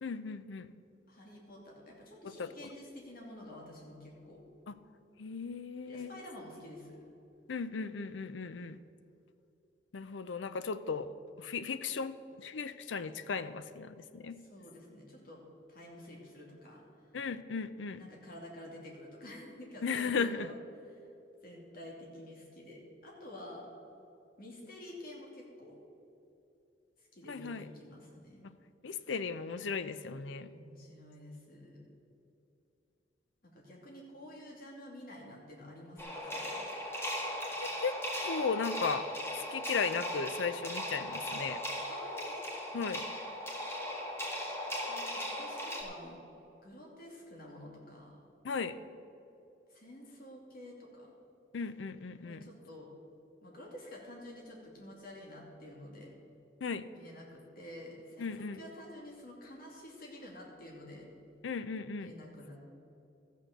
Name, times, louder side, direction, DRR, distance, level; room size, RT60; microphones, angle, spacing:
voice 1, 0.0-0.7 2.4-2.5 4.7-4.8 5.2-6.2 7.5-8.8 9.9-11.1 11.4-14.4 17.1-18.0 19.8-20.5 27.3-27.7 28.8-30.5 37.6-38.0 38.2-39.1 39.5-41.6 42.7-43.0 48.4-48.8 51.5-52.5 56.6-56.8 58.2-58.6 61.4-62.1, left 5 dB, 90° left, 13 dB, 0.6 m, -36 dB
voice 2, 1.1-4.4 5.9-7.0 14.5-15.4 15.7-16.8 18.0-20.5 21.4-23.7 24.4-25.8 27.1-28.5 30.5-31.9 33.4-36.7 41.9-42.3 44.9-46.2 46.6-48.2 49.7-51.1 52.2-52.9 53.4-56.1 56.9-61.1 62.0-62.6, left 1 dB, 50° left, -2 dB, 2.6 m, -49 dB
sound 1, 36.0-45.8, equal, 15° left, 1.8 m, -38 dB
14.0 x 6.5 x 6.6 m, 2.8 s
head